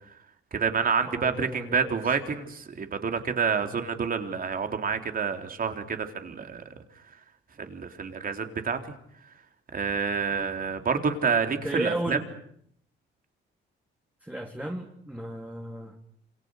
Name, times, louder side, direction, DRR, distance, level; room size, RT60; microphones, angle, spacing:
voice 1, 0.5-6.6 7.6-8.9 9.7-12.2, right 6 dB, 45° right, 6 dB, 3.9 m, -28 dB
voice 2, 1.1-2.2 11.5-12.3 14.2-16.0, right 1 dB, 5° right, 2 dB, 3.3 m, -34 dB
27.5 x 27.5 x 6.6 m, 0.69 s
cardioid pair, 90°, 20 cm